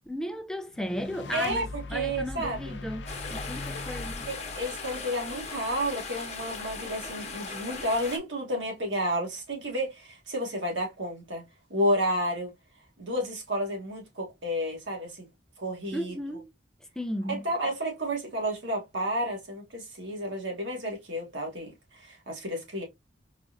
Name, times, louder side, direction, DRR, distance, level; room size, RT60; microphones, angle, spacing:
voice 1, 0.1-4.3 15.9-16.5 17.0-17.5, equal, 5° left, 0.3 m, -35 dB
sound 1, 0.7-6.1, left 2 dB, 70° left, 0.6 m, -41 dB
voice 2, 1.3-1.6 1.9-2.8 4.3-11.4 11.7-12.5 13.0-15.3 15.6-16.1 17.3-21.7 22.1-22.8, equal, 90° right, 1.6 m, -31 dB
sound 2, 3.1-8.2, left 4 dB, 35° left, 0.9 m, -38 dB
4.1 x 2.5 x 2.6 m
head